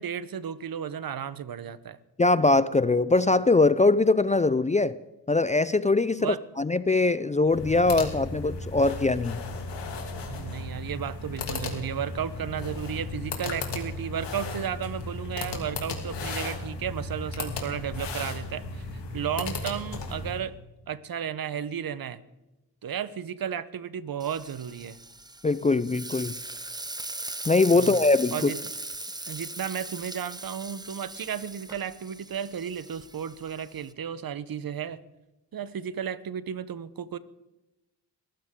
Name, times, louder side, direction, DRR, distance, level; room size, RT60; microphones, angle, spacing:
voice 1, 0.0-2.0 6.2-6.4 10.2-18.9 19.1-20.5 20.9-22.2 22.8-25.0 27.7-28.0 28.3-28.6 29.3-35.0 35.5-37.2, right 8 dB, 55° right, 16 dB, 0.9 m, -33 dB
voice 2, 2.2-5.0 5.3-9.4 25.4-26.3 27.5-28.5, left 3 dB, 20° left, 16 dB, 0.4 m, -22 dB
sound 1, 7.4-20.5, left 3 dB, 80° left, 2.7 m, -35 dB
Frying (food), 24.2-33.9, right 2 dB, 10° right, 0.9 m, -39 dB
22.5 x 14.5 x 3.7 m, 0.98 s
cardioid pair, 60°, 42 cm